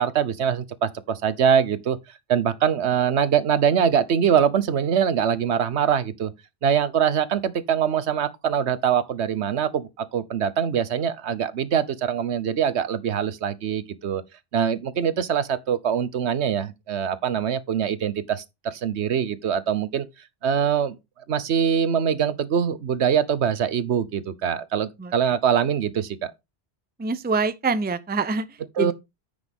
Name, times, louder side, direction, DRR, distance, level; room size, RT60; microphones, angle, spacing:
voice 1, 0.0-2.0 2.3-6.3 6.6-14.2 14.5-20.0 20.4-21.0 21.3-26.3 28.8-28.9, right 8 dB, 80° right, 1.2 m, -23 dB
voice 2, 25.0-25.3 27.0-28.9, right 4 dB, 10° right, 0.5 m, -26 dB
9.9 x 6.8 x 3.5 m
omnidirectional pair, 1.1 m